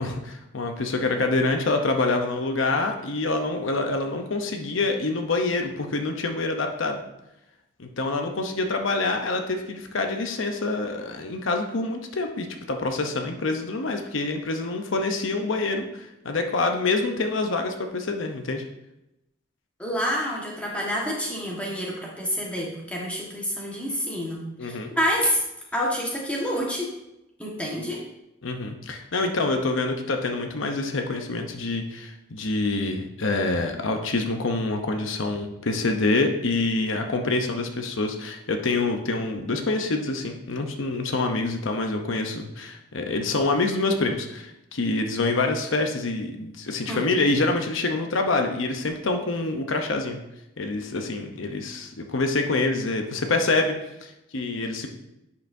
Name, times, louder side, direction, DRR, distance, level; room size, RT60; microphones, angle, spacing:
voice 1, 0.0-7.0 7.8-18.6 24.6-24.9 28.4-50.2 50.6-53.7 54.0-54.9, left 3 dB, 80° left, 4 dB, 0.8 m, -26 dB
voice 2, 19.8-25.4 25.7-26.9 27.4-28.0 46.9-47.1, equal, 5° left, -3 dB, 1.5 m, -28 dB
10.5 x 5.7 x 2.7 m, 0.88 s
head